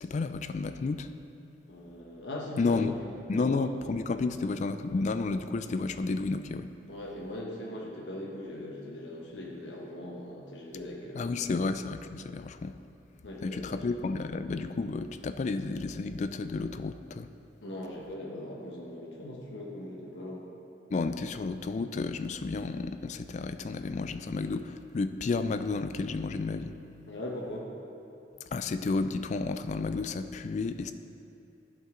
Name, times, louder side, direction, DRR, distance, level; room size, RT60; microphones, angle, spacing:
voice 1, 0.0-1.1 2.6-3.0 3.3-6.7 11.2-12.8 13.4-17.3 20.9-26.7 28.5-30.9, left 3 dB, 40° left, 10 dB, 0.3 m, -31 dB
voice 2, 1.7-3.8 6.9-11.7 13.2-13.9 17.6-20.4 27.1-27.7, left 1 dB, 80° left, -3 dB, 1.2 m, -40 dB
12.0 x 5.4 x 3.8 m, 2.7 s
head